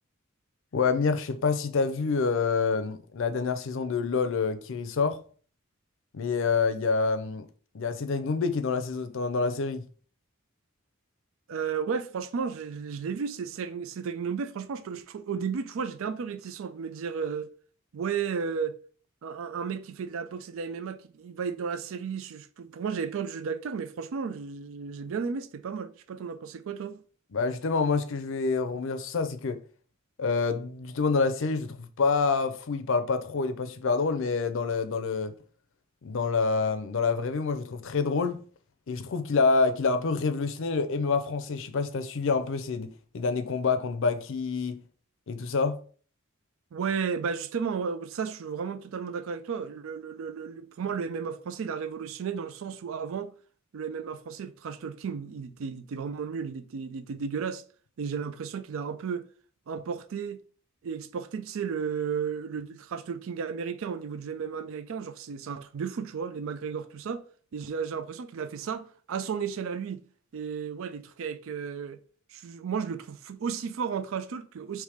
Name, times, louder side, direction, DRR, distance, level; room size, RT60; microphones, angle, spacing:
voice 1, 0.7-5.2 6.1-7.5 7.7-9.8 27.3-29.6 30.2-35.3 36.0-38.4 38.9-44.8 45.3-45.8, left 4 dB, 65° left, 0.5 m, -27 dB
voice 2, 11.5-17.5 17.9-18.8 19.2-27.0 46.7-53.3 53.7-57.6 58.0-59.3 59.7-60.4 60.8-67.2 67.5-70.0 70.3-72.0 72.3-74.8, right 6 dB, 70° right, 0.4 m, -33 dB
3.4 x 3.1 x 4.8 m
head